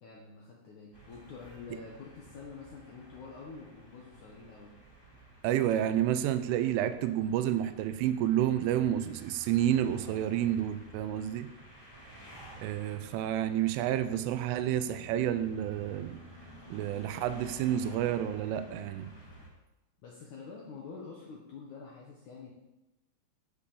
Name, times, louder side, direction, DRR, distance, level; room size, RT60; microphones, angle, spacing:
voice 1, 0.0-4.8 20.0-22.5, left 5 dB, 80° left, -3 dB, 1.7 m, -47 dB
sound 1, 0.9-19.5, right 1 dB, 10° left, 1.4 m, -52 dB
voice 2, 5.4-11.5 12.6-16.2 16.7-19.1, right 11 dB, 85° right, 11 dB, 3.0 m, -30 dB
14.0 x 6.8 x 6.9 m, 0.99 s
omnidirectional pair, 6.0 m